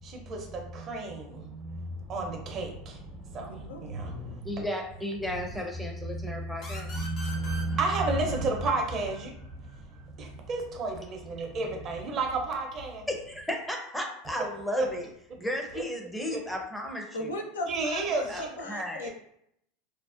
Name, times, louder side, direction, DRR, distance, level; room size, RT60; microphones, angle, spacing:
voice 1, 0.0-4.6 6.1-13.1 14.8-14.9 15.7-15.8 16.3-16.4 17.7-18.6 19.0-19.1, right 3 dB, 40° right, 2 dB, 0.6 m, -32 dB
voice 2, 3.5-3.8 17.1-19.1, left 1 dB, 90° left, 3 dB, 0.4 m, -37 dB
voice 3, 4.4-7.1 13.1-15.1 15.4-17.3 18.3-19.0, left 1 dB, 5° left, 2 dB, 0.5 m, -34 dB
sound 1, 6.6-10.0, equal, 45° left, 0.8 m, -44 dB
2.5 x 2.1 x 2.4 m, 0.73 s
hypercardioid pair, 100°, 0 cm